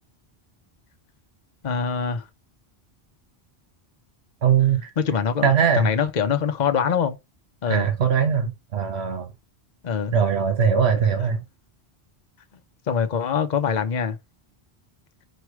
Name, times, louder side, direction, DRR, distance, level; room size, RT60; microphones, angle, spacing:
voice 1, 1.6-2.2 5.0-7.2 7.6-7.9 9.8-10.2 12.9-14.2, left 6 dB, 45° left, 0.8 m, -24 dB
voice 2, 4.4-4.9 5.4-5.9 7.7-9.3 10.1-11.4, right 7 dB, 85° right, 1.2 m, -20 dB
4.8 x 4.5 x 4.7 m
omnidirectional pair, 1.1 m